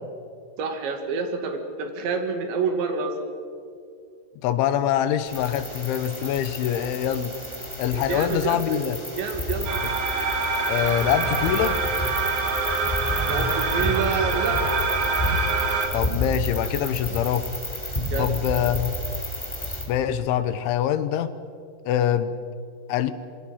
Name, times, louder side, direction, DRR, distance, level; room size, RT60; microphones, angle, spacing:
voice 1, 0.6-3.2 7.9-8.8 9.2-9.7 13.2-14.6 18.1-18.4, right 5 dB, 75° right, 5 dB, 4.4 m, -28 dB
voice 2, 4.4-7.3 7.8-9.0 10.7-11.8 15.9-17.5 18.2-18.9 19.9-21.3 21.9-22.3 22.9-23.1, left 10 dB, 85° left, 12 dB, 3.5 m, -24 dB
sound 1, 5.3-19.8, left 1 dB, 5° left, 3.1 m, -31 dB
sound 2, 9.6-15.9, right 4 dB, 45° right, 3.1 m, -25 dB
26.0 x 24.5 x 5.8 m, 2.3 s
omnidirectional pair, 5.4 m